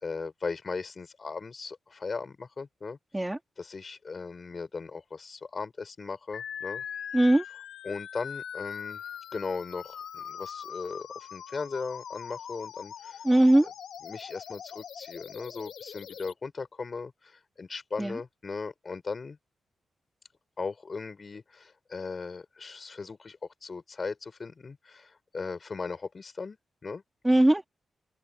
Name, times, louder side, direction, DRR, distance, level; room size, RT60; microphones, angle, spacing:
voice 1, 0.0-3.0 3.6-6.8 7.8-9.0 9.3-13.2 14.0-19.4 20.6-26.6 26.8-27.0, left 4 dB, 35° left, 6.0 m, -38 dB
sound 1, 6.3-16.3, left 8 dB, 90° left, 2.8 m, -41 dB
voice 2, 7.1-7.4 13.2-13.7 18.0-18.2 27.2-27.7, right 1 dB, 10° right, 2.9 m, -20 dB
open air
wide cardioid pair, 155°, 0 cm